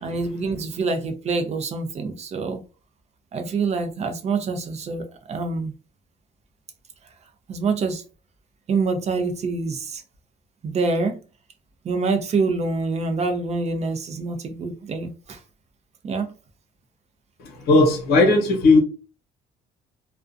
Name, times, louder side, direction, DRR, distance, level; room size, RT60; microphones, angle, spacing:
voice 1, 0.0-2.6 3.3-5.7 7.5-8.0 8.7-10.0 10.6-11.2 11.8-15.4 16.0-16.3, right 4 dB, 40° right, 0.5 m, -26 dB
voice 2, 17.7-18.8, left 3 dB, 65° left, 0.9 m, -16 dB
2.4 x 2.2 x 2.5 m
cardioid pair, 110°, 17 cm